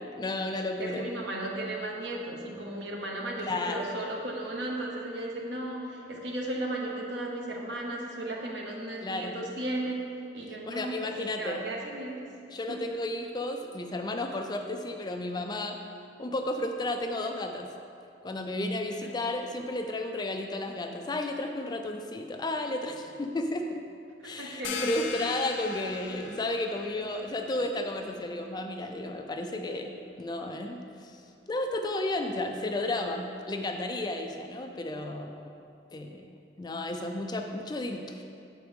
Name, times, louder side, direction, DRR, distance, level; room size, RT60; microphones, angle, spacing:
voice 1, 0.2-1.0 3.4-3.9 9.0-9.4 10.6-11.6 12.5-15.8 16.2-17.7 18.2-23.8 24.2-31.1 31.5-35.5 35.9-36.2 36.6-38.2, left 2 dB, 20° left, 4 dB, 0.4 m, -33 dB
voice 2, 0.8-10.0 10.3-11.1 11.4-12.3 12.7-12.8 24.2-25.0, right 1 dB, 65° right, -1 dB, 1.1 m, -35 dB
sound 1, 24.6-30.0, left 5 dB, 80° left, 0.6 m, -41 dB
7.3 x 4.6 x 5.2 m, 2.5 s
head